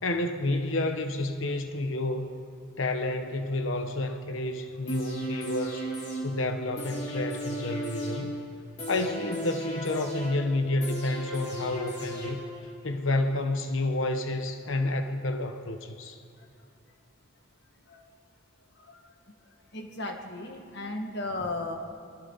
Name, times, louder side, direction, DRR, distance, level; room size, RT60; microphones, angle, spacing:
voice 1, 0.0-2.3 2.8-5.8 6.2-8.4 8.9-12.4 12.8-16.2, left 2 dB, 75° left, 6 dB, 1.1 m, -30 dB
sound 1, 4.9-12.8 13.2-13.3, right 1 dB, 35° left, 3.4 m, -36 dB
voice 2, 18.8-19.1 19.7-21.8, left 2 dB, 55° left, 3 dB, 1.9 m, -36 dB
29.5 x 22.0 x 4.1 m, 2.3 s
head